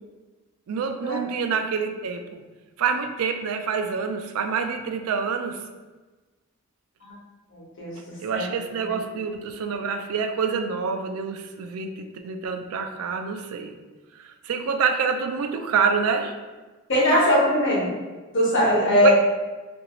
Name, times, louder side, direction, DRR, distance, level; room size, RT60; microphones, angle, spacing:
voice 1, 0.7-2.4 2.8-5.6 8.2-13.7 14.2-16.3 17.1-17.2 19.0-19.1, right 5 dB, 80° right, 7 dB, 0.3 m, -27 dB
voice 2, 7.5-7.9 8.3-8.4 16.9-17.9 18.3-19.1, equal, 55° left, -5 dB, 0.9 m, -20 dB
3.0 x 2.6 x 2.9 m, 1.3 s
head